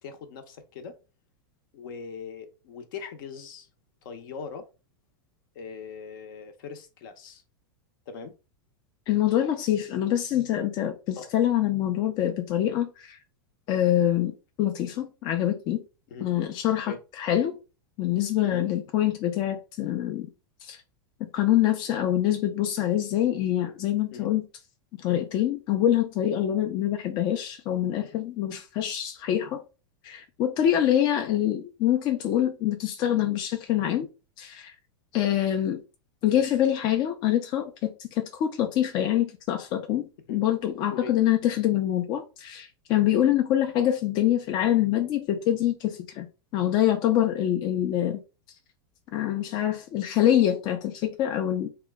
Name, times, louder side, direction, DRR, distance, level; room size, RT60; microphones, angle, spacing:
voice 1, 0.0-1.0 1.7-3.7 4.0-4.7 5.5-7.4 8.1-8.3 11.2-11.3 16.1-16.3 16.9-17.0 18.4-18.7 24.1-24.3 31.2-31.3 36.3-36.4 40.3-40.4 40.9-41.1 43.1-43.4, left 6 dB, 65° left, 0.7 m, -40 dB
voice 2, 9.1-13.2 13.7-15.8 16.2-17.6 18.0-20.3 20.6-20.8 21.2-24.5 25.0-29.6 30.0-34.1 34.4-34.7 35.1-35.8 36.2-46.3 46.5-48.2 49.1-51.7, left 11 dB, 40° left, 0.4 m, -25 dB
2.8 x 2.2 x 3.4 m
supercardioid pair, 125°, 12 cm